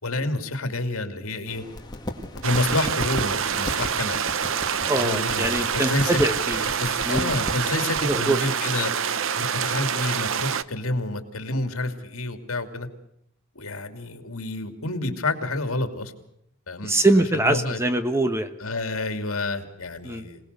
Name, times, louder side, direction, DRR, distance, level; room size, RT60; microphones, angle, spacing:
voice 1, 0.0-1.6 2.4-4.3 5.0-6.2 6.8-8.9 9.4-12.9 13.5-16.1 16.7-17.0 17.3-17.8 18.6-20.4, left 2 dB, 75° left, 7 dB, 2.8 m, -29 dB
sound 1, 1.5-8.2, left 1 dB, 20° left, 2.2 m, -36 dB
sound 2, 2.4-10.6, right 7 dB, 60° right, 0.8 m, -26 dB
voice 2, 4.9-6.6 7.0-7.3 8.0-8.4 16.8-18.5 20.0-20.2, right 1 dB, 10° right, 8 dB, 1.2 m, -23 dB
26.5 x 19.0 x 6.9 m, 0.74 s
head